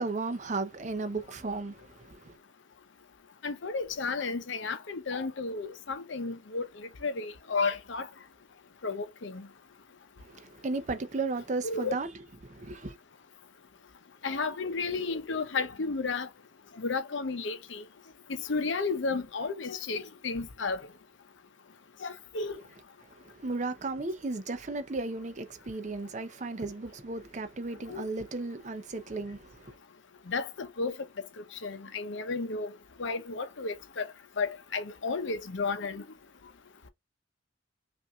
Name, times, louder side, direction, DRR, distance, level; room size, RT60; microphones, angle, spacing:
voice 1, 0.0-2.4 10.3-12.1 12.4-12.9 23.1-29.8, right 3 dB, 40° right, 0.5 m, -35 dB
voice 2, 3.4-6.7 7.0-8.1 8.8-9.4 11.6-11.9 14.2-16.3 16.8-17.8 18.5-20.8 22.0-22.6 27.9-28.0 30.3-31.0 31.6-32.7 33.0-34.1 34.4-36.0, left 4 dB, 75° left, 0.7 m, -32 dB
5.5 x 2.6 x 2.3 m
head